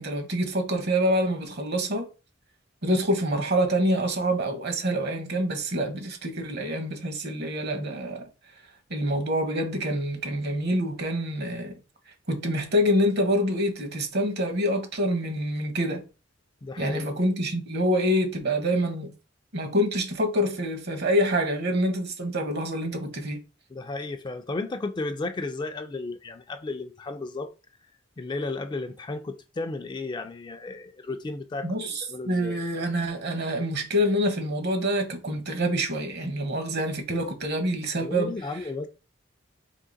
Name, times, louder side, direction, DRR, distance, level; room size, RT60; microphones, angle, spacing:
voice 1, 0.0-2.1 2.8-8.3 8.9-11.8 12.3-16.0 16.8-19.1 19.5-23.4 31.6-38.6, equal, 60° right, 1.0 m, -26 dB
voice 2, 16.6-17.2 23.7-27.5 28.2-31.7 32.1-32.6 38.0-38.9, left 3 dB, 25° left, 0.3 m, -33 dB
3.7 x 2.8 x 3.9 m
head